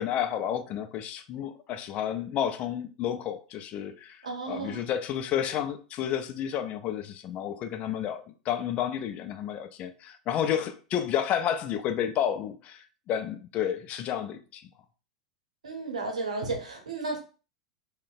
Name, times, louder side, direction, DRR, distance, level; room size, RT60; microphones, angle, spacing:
voice 1, 0.0-14.7, left 9 dB, 35° left, 0.4 m, -31 dB
voice 2, 4.2-4.8 15.6-17.2, right 3 dB, 75° right, 0.9 m, -33 dB
3.8 x 2.2 x 2.5 m
figure-of-eight pair, 90°, 4 cm